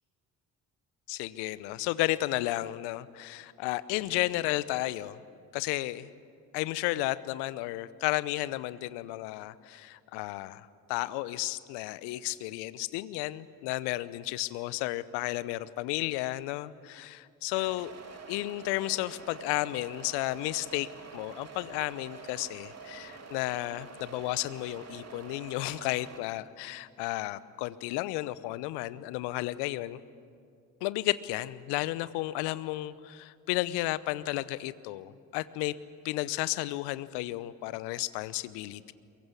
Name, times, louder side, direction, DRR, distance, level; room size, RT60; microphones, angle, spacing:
voice 1, 1.1-5.2 5.5-6.1 6.5-17.9 18.3-30.0 30.8-35.7 36.0-38.9, left 17 dB, 70° left, 17 dB, 0.9 m, -33 dB
sound 1, 17.5-26.2, right 5 dB, 35° right, 2.9 m, -47 dB
23.0 x 22.0 x 8.5 m, 2.3 s
hypercardioid pair, 45°, 42 cm